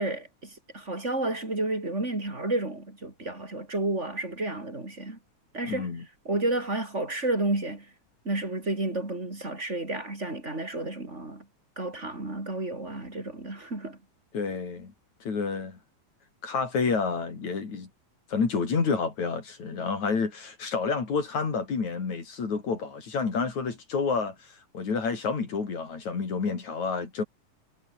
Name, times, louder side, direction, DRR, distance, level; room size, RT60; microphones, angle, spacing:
voice 1, 0.0-5.2 5.5-5.9 6.2-7.9 8.2-11.4 11.8-14.0, right 2 dB, 20° right, 4.8 m, -31 dB
voice 2, 5.6-6.0 14.3-14.9 15.3-15.8 16.4-17.9 18.3-27.2, left 5 dB, 60° left, 5.4 m, -29 dB
omnidirectional pair, 3.6 m